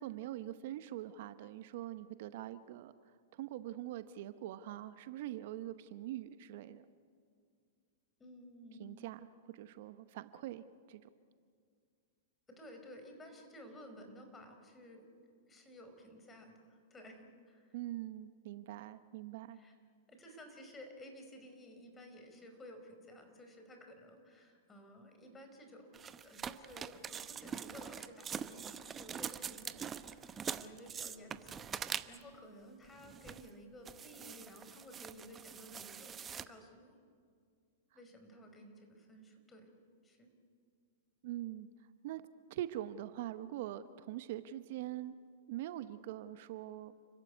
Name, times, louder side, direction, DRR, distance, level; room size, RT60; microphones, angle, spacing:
voice 1, 0.0-2.9 3.3-6.9 8.8-11.1 17.7-19.6 41.2-41.7 42.0-42.2 42.5-45.1 45.5-46.9, right 13 dB, 60° right, 13 dB, 0.9 m, -43 dB
voice 2, 8.2-9.0 12.5-15.1 15.5-17.8 19.5-19.7 20.1-37.0 37.9-39.7 40.0-40.3, equal, 15° left, 5 dB, 5.1 m, -54 dB
sound 1, 25.9-32.3 33.0-33.5 33.9-36.4, right 7 dB, 20° right, 0.9 m, -44 dB
30.0 x 14.5 x 9.6 m, 2.2 s
hypercardioid pair, 110°, 0 cm